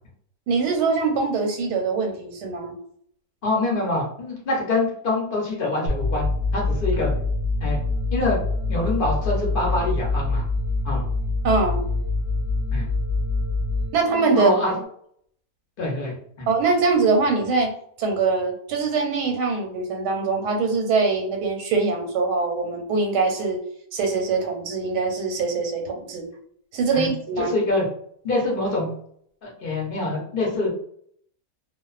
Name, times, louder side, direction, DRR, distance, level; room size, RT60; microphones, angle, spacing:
voice 1, 0.5-2.8 11.4-11.8 13.9-14.6 16.5-17.7 18.0-23.6 23.9-26.3 26.7-27.5, right 4 dB, 90° right, 3 dB, 1.2 m, -23 dB
voice 2, 3.4-6.3 6.5-7.1 7.6-7.8 8.1-8.4 8.7-10.4 10.8-11.0 12.7-12.9 14.3-14.7 15.8-16.5 26.9-27.1 27.4-27.8 28.2-28.9 29.4-30.7, left 2 dB, 50° left, -2 dB, 0.7 m, -25 dB
sound 1, 5.9-14.9, left 3 dB, 50° right, 0.8 m, -25 dB
2.4 x 2.3 x 2.3 m, 0.64 s
omnidirectional pair, 1.7 m